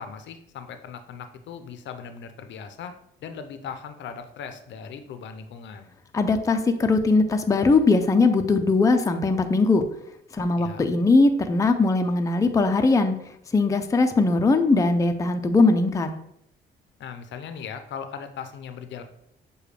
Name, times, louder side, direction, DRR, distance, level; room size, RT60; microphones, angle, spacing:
voice 1, 0.0-3.0 3.2-5.9 10.6-10.9 17.0-19.0, left 6 dB, 65° left, 8 dB, 0.5 m, -38 dB
voice 2, 6.1-9.8 10.3-13.1 13.5-16.1, left 3 dB, 15° left, 6 dB, 0.4 m, -20 dB
6.5 x 2.3 x 3.2 m, 0.75 s
cardioid pair, 90°, 20 cm